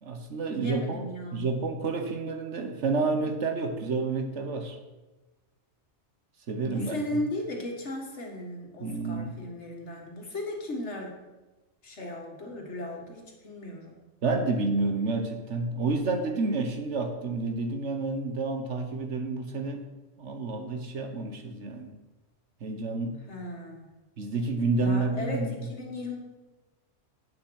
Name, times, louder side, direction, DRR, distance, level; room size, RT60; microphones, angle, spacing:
voice 1, 0.0-4.8 6.5-7.2 8.8-9.4 14.2-19.8 20.2-21.9 22.6-23.2 24.2-25.5, right 3 dB, 80° right, 6 dB, 1.5 m, -29 dB
voice 2, 0.5-1.5 6.6-11.2 11.8-14.0 23.3-23.9 24.8-26.2, left 1 dB, 80° left, 1 dB, 2.1 m, -36 dB
8.8 x 6.9 x 6.4 m, 1.1 s
omnidirectional pair, 1.2 m